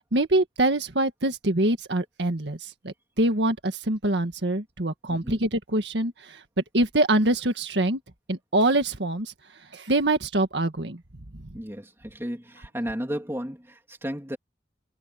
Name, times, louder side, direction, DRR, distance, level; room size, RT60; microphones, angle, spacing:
voice 1, 0.1-6.4 6.7-8.0 8.3-9.3 9.7-11.0, right 1 dB, 80° right, 1.7 m, -24 dB
voice 2, 5.1-5.4 11.5-14.4, equal, 15° right, 3.1 m, -34 dB
head